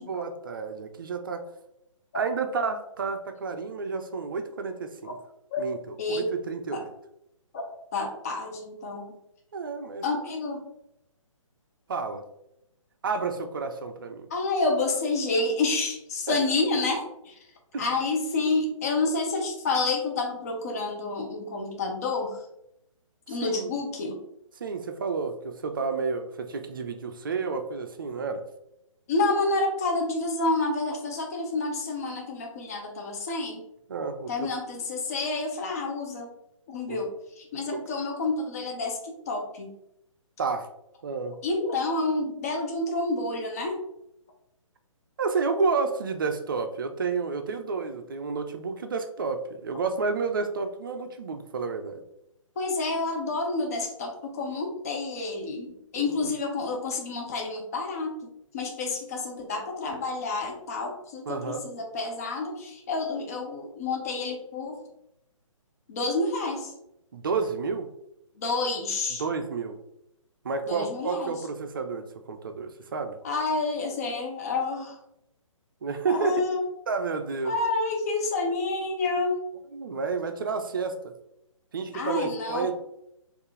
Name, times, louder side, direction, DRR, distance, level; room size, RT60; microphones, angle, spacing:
voice 1, 0.0-1.5 2.1-5.2 5.6-6.9 9.5-10.0 11.9-12.2 13.0-14.3 16.3-16.4 17.7-17.9 23.4-23.7 24.6-28.4 33.9-34.5 36.9-37.0 37.7-37.9 40.4-40.7 41.0-41.4 45.2-52.0 55.9-56.1 61.3-61.6 67.1-67.9 69.2-69.8 70.4-73.2 75.8-76.4 76.9-77.6 79.7-81.1 81.7-82.7, right 4 dB, 40° right, 7 dB, 0.4 m, -30 dB
voice 2, 6.0-6.3 6.7-6.8 7.5-9.1 10.0-10.6 14.3-17.4 17.8-22.4 23.3-24.2 29.1-33.6 34.3-36.3 36.7-37.1 37.4-39.7 41.4-43.8 52.6-58.1 58.5-64.8 65.9-66.7 68.4-69.2 70.7-71.3 73.2-75.0 76.1-76.6 77.4-79.4 81.9-82.7, left 3 dB, 30° left, 1 dB, 0.6 m, -29 dB
4.3 x 2.5 x 3.1 m, 0.81 s
figure-of-eight pair, 135°, 17 cm